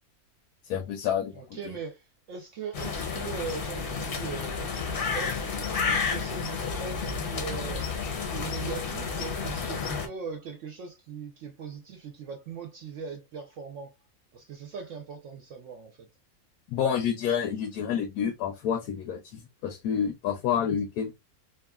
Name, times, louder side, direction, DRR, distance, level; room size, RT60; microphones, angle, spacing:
voice 1, 0.7-1.3 16.7-21.1, left 8 dB, 90° left, 1.1 m, -28 dB
voice 2, 1.3-7.9 8.3-13.9 14.3-16.1, right 5 dB, 65° right, 0.8 m, -40 dB
sound 1, 2.7-10.1, left 5 dB, 55° left, 0.7 m, -31 dB
2.9 x 2.4 x 2.2 m
omnidirectional pair, 1.6 m